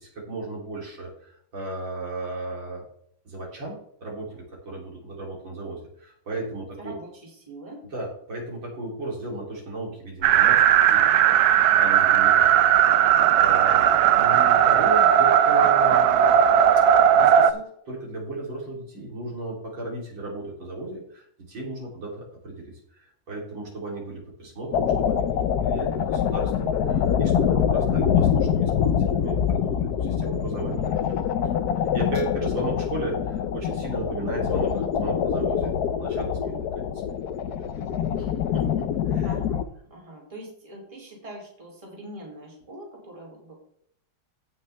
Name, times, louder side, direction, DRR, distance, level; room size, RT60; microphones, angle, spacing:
voice 1, 0.2-2.9 3.3-7.0 7.8-16.4 16.8-16.9 17.1-37.3 37.5-39.4, right 2 dB, 65° right, -3 dB, 3.8 m, -35 dB
voice 2, 6.8-7.9 34.5-34.9 39.2-43.5, equal, 15° right, -2 dB, 3.0 m, -42 dB
sound 1, 10.2-17.5, right 9 dB, 80° right, 0.8 m, -17 dB
sound 2, 24.7-39.6, left 8 dB, 70° left, 0.9 m, -25 dB
16.5 x 6.0 x 3.3 m, 0.68 s
omnidirectional pair, 2.3 m